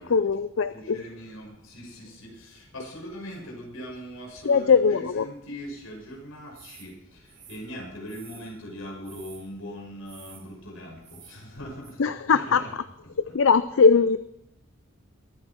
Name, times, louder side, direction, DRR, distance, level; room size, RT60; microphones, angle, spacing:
voice 1, 0.0-1.0 4.4-5.3 12.0-12.6 13.2-14.2, left 5 dB, 70° left, 13 dB, 0.5 m, -20 dB
voice 2, 0.7-12.7 13.2-13.3, equal, 85° left, -1 dB, 6.3 m, -41 dB
sound 1, 6.5-6.9 7.3-8.6 9.0-9.5 10.1-10.5 11.0-11.4 11.8-11.9, right 8 dB, 45° right, 3.5 m, -50 dB
22.5 x 9.2 x 4.5 m, 0.78 s
head